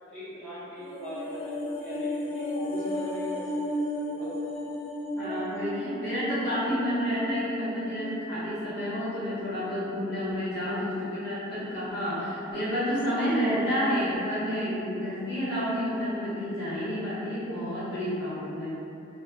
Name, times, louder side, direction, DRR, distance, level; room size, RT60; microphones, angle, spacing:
voice 1, 0.1-4.3 4.5-4.6 5.2-5.5, left 1 dB, 5° left, -15 dB, 0.8 m, -40 dB
sound 1, 0.8-9.2 9.5-9.6, left 1 dB, 30° left, 0.3 m, -34 dB
voice 2, 5.1-18.8, equal, 55° left, -12 dB, 0.9 m, -30 dB
2.2 x 2.2 x 3.0 m, 2.8 s
head